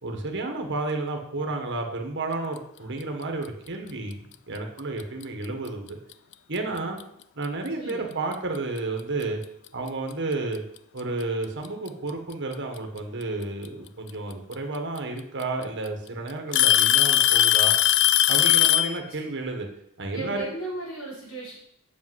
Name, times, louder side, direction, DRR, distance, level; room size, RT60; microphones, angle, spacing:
voice 1, 0.0-6.0 6.5-7.0 7.3-9.4 9.7-10.6 10.9-17.7 18.3-19.7 20.0-20.5, right 2 dB, 55° right, 3 dB, 1.5 m, -31 dB
Alarm / Tick-tock, 5.0-5.2 6.1-6.2 7.0-7.1 8.8-8.9 10.1-10.2 11.4-11.9 13.6-13.7 15.0-15.1 15.4-15.9 16.5-19.0, left 13 dB, 55° left, 0.4 m, -19 dB
voice 2, 7.8-8.2 20.1-21.6, right 2 dB, 80° left, -4 dB, 4.6 m, -36 dB
7.8 x 6.8 x 8.1 m, 0.74 s
head